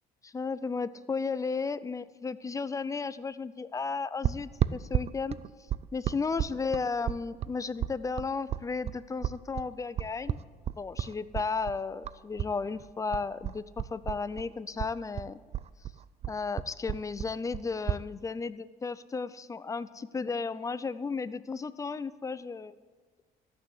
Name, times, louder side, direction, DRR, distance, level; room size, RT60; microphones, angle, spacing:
voice 1, 0.2-5.4 5.9-10.4 10.8-15.4 16.3-22.7, left 4 dB, 20° left, 15 dB, 0.4 m, -34 dB
sound 1, 4.2-12.5 12.8-14.5 14.8-18.0, right 10 dB, 40° right, 0.4 m, -33 dB
14.0 x 6.2 x 8.3 m, 1.4 s
cardioid pair, 110°, 17 cm